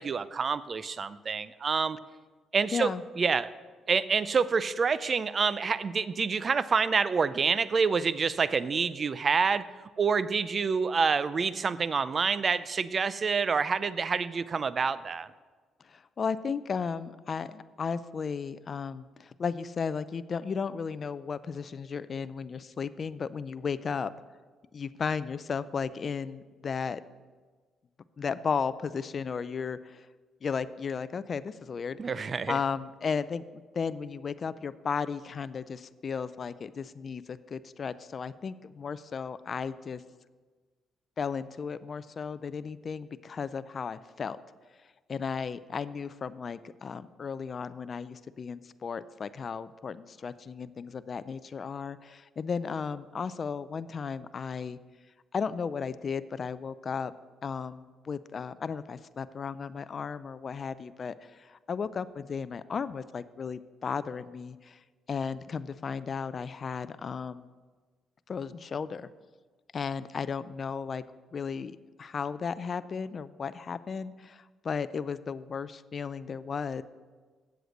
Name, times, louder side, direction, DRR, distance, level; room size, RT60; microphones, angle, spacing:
voice 1, 0.0-2.0 2.5-2.9 3.2-3.5 3.9-9.6 10.0-15.3 32.0-32.6, right 5 dB, 40° right, 16 dB, 0.4 m, -27 dB
voice 2, 2.7-3.0 15.8-24.1 24.7-27.0 28.2-30.1 30.4-32.0 32.5-40.0 41.2-44.4 45.1-54.8 55.3-57.1 57.4-64.8 65.1-67.5 68.3-69.1 69.7-71.0 71.3-76.8, left 6 dB, 45° left, 14 dB, 0.4 m, -35 dB
8.0 x 7.7 x 6.5 m, 1.4 s
cardioid pair, 90°, 0 cm